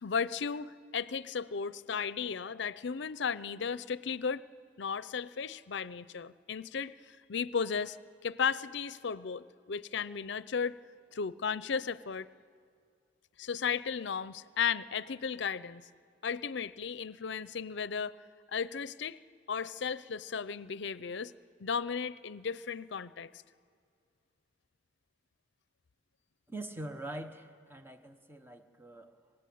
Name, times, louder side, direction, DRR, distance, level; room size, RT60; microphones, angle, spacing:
voice 1, 0.0-4.4 4.8-7.0 7.3-8.0 8.2-10.8 11.1-12.3 13.4-15.8 16.2-18.1 18.5-19.2 19.5-21.3 21.6-23.3, left 6 dB, 65° left, 17 dB, 0.6 m, -35 dB
voice 2, 26.5-29.3, right 1 dB, 10° right, 7 dB, 1.0 m, -44 dB
25.0 x 21.0 x 8.6 m, 2.3 s
head